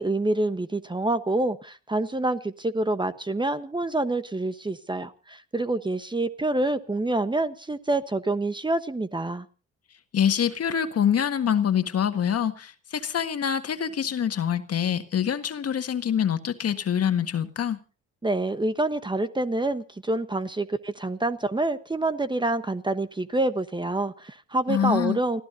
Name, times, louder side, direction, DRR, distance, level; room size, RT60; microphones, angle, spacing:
voice 1, 0.0-9.5 18.2-25.4, right 2 dB, 15° right, 1.1 m, -27 dB
voice 2, 10.1-17.8 24.7-25.2, left 8 dB, 55° left, 1.7 m, -25 dB
29.5 x 15.5 x 2.7 m
cardioid pair, 90°, 30 cm